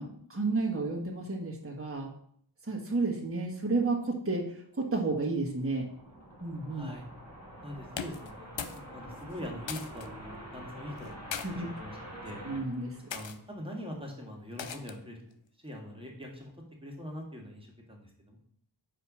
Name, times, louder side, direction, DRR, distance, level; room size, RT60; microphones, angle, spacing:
voice 1, 0.0-2.1 2.7-5.9 6.4-6.9 11.4-11.7 12.4-13.0, right 3 dB, 30° right, -1 dB, 1.5 m, -31 dB
sound 1, 5.5-13.7, equal, 35° left, 3.1 m, -47 dB
voice 2, 6.7-7.0 7.6-12.4 13.1-15.2 15.6-16.5 16.8-18.4, equal, 10° right, -1 dB, 2.0 m, -43 dB
sound 2, 7.9-8.8 9.1-10.1 11.0-11.5 12.2-12.5 13.1-13.4 14.6-15.1, left 7 dB, 80° left, 0.6 m, -39 dB
5.0 x 4.6 x 6.1 m, 0.64 s
wide cardioid pair, 55°, 44 cm